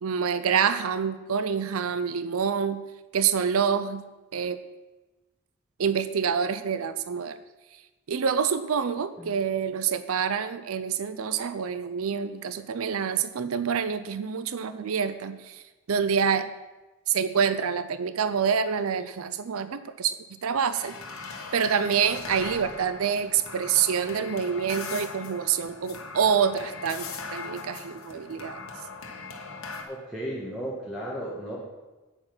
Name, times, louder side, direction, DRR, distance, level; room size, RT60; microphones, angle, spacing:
voice 1, 0.0-2.8 3.1-4.0 4.3-4.6 5.8-7.4 8.1-15.6 15.9-16.5 17.1-20.9 21.5-28.6, right 7 dB, 75° right, 12 dB, 0.5 m, -27 dB
sound 1, 20.7-29.8, left 4 dB, 75° left, 1.3 m, -40 dB
voice 2, 29.8-31.6, right 1 dB, ahead, -6 dB, 1.6 m, -34 dB
9.1 x 8.6 x 6.1 m, 1.2 s
head